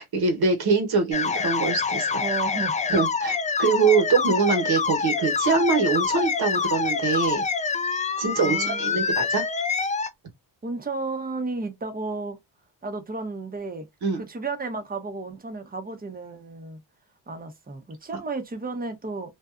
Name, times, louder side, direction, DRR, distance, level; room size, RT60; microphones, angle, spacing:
voice 1, 0.0-2.2 2.9-7.4 8.2-9.4 14.0-14.2, right 4 dB, 55° right, 1.2 m, -23 dB
sound 1, 1.1-10.1, left 5 dB, 20° left, 0.3 m, -26 dB
voice 2, 2.2-2.9 8.4-9.2 10.6-12.4 12.8-13.9 14.2-16.8 17.3-19.4, right 3 dB, 20° right, 0.9 m, -33 dB
2.5 x 2.3 x 2.4 m
cardioid pair, 70°, 43 cm